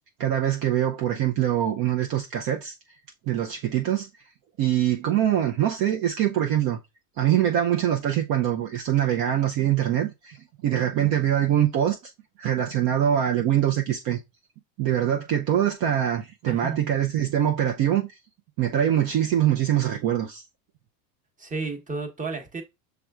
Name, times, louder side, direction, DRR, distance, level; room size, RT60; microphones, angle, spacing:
voice 1, 0.2-2.7 3.3-4.1 4.6-6.8 7.2-12.0 12.4-14.2 14.8-18.1 18.6-20.4, right 11 dB, 45° right, 0.7 m, -23 dB
voice 2, 16.5-16.8 21.4-22.6, right 4 dB, 15° right, 1.0 m, -32 dB
5.9 x 3.4 x 2.4 m
hypercardioid pair, 100°, 49 cm